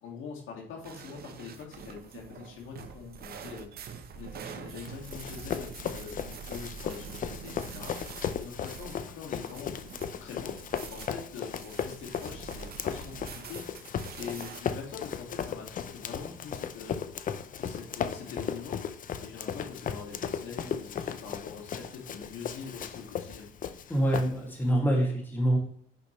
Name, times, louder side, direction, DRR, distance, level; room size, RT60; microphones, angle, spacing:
voice 1, 0.0-9.8 10.2-10.6 10.9-17.0 17.6-23.5, left 5 dB, 70° left, -1 dB, 2.2 m, -44 dB
sound 1, 0.8-14.6, right 6 dB, 50° right, 1.0 m, -45 dB
Run, 4.8-24.7, left 7 dB, 40° left, 0.6 m, -36 dB
voice 2, 23.9-25.6, right 1 dB, 10° left, -1 dB, 2.3 m, -25 dB
9.1 x 5.7 x 3.2 m, 0.62 s
cardioid pair, 115°, 21 cm